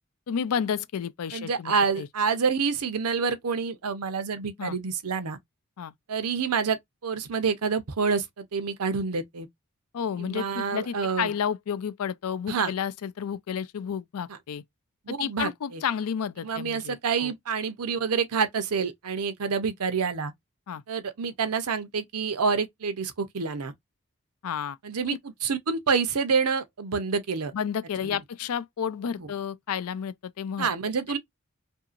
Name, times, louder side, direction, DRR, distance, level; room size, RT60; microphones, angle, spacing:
voice 1, 0.3-2.1 4.6-4.8 5.8-5.9 9.9-14.6 15.1-17.3 20.7-20.8 24.4-24.8 25.1-25.2 27.5-30.7, left 7 dB, 85° left, 0.4 m, -31 dB
voice 2, 1.3-5.4 6.1-9.5 10.2-11.3 12.5-12.7 15.1-15.8 16.4-20.3 20.9-23.7 24.8-27.5 29.2-29.3 30.6-31.2, right 5 dB, 90° right, 0.7 m, -27 dB
2.8 x 2.7 x 2.4 m
head